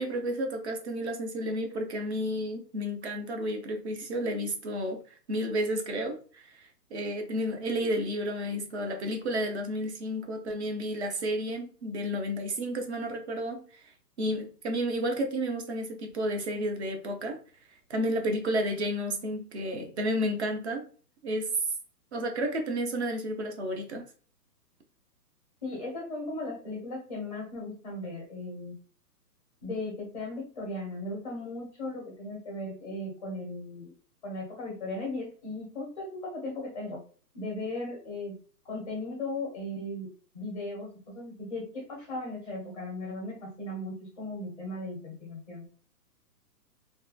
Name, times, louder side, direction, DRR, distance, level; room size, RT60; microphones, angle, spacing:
voice 1, 0.0-5.0 5.3-13.6 14.2-17.4 17.9-20.9 21.2-21.5 22.1-24.1, equal, 45° right, 0.6 m, -31 dB
voice 2, 25.6-28.7 29.6-33.9 34.2-37.0 37.3-38.4 38.6-45.7, left 2 dB, 25° left, 0.4 m, -37 dB
2.9 x 2.2 x 2.2 m
hypercardioid pair, 155°, 49 cm